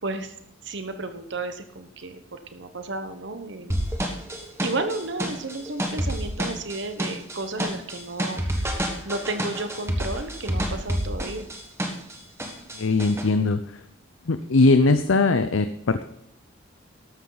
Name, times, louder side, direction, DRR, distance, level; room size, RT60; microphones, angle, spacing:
voice 1, 0.0-0.3 0.6-3.8 4.6-8.4 9.0-11.5, right 2 dB, 60° right, 8 dB, 1.2 m, -32 dB
sound 1, 3.7-12.1 12.4-13.2, equal, 15° right, 1.4 m, -28 dB
voice 2, 12.8-13.6 14.3-16.0, left 3 dB, 75° left, 10 dB, 0.6 m, -20 dB
12.5 x 12.5 x 4.0 m, 0.78 s
head